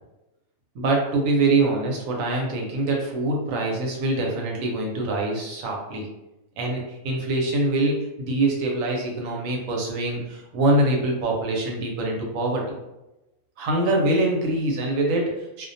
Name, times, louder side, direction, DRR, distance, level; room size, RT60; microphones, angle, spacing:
voice 1, 0.7-6.1 6.6-12.6 13.6-15.7, right 2 dB, 80° right, 0 dB, 1.0 m, -24 dB
2.4 x 2.1 x 2.6 m, 0.97 s
omnidirectional pair, 1.4 m